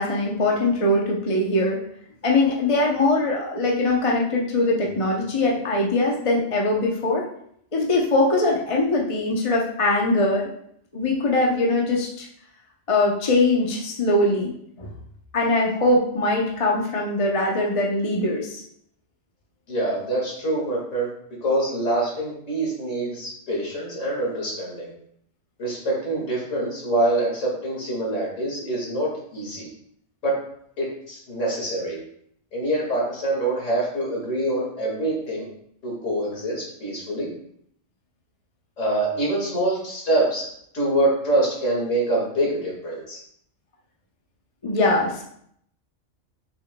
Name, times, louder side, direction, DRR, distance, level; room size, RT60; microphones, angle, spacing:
voice 1, 0.0-1.8 2.2-7.2 7.7-10.5 10.9-12.3 12.9-14.5 14.8-14.9 15.3-18.6 44.6-45.2, left 2 dB, 30° left, -2 dB, 0.8 m, -22 dB
voice 2, 19.7-21.1 21.4-24.9 25.6-29.7 30.2-30.3 30.8-32.0 32.5-35.4 35.8-37.3 38.8-40.5 40.7-43.2, right 1 dB, 85° left, -3 dB, 2.4 m, -25 dB
6.9 x 6.2 x 2.2 m, 0.69 s
omnidirectional pair, 1.3 m